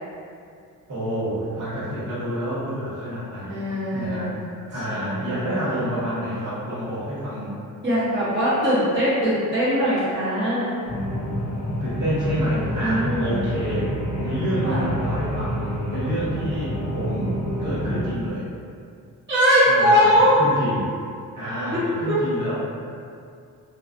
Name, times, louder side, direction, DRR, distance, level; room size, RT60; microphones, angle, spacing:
voice 1, 0.9-3.7 3.9-4.3 4.7-7.6 11.8-13.9 14.1-18.4 19.7-20.9 21.3-22.5, equal, 55° right, -10 dB, 1.1 m, -28 dB
voice 2, 3.5-4.4 4.9-5.8 7.8-10.8 12.8-13.3 14.5-14.8 19.3-20.4 21.7-21.8 22.1-22.2, equal, 30° right, -12 dB, 0.8 m, -21 dB
sound 1, 10.8-18.1, equal, 45° left, 0.7 m, -28 dB
2.3 x 2.2 x 2.4 m, 2.4 s
cardioid pair, 95°, 35 cm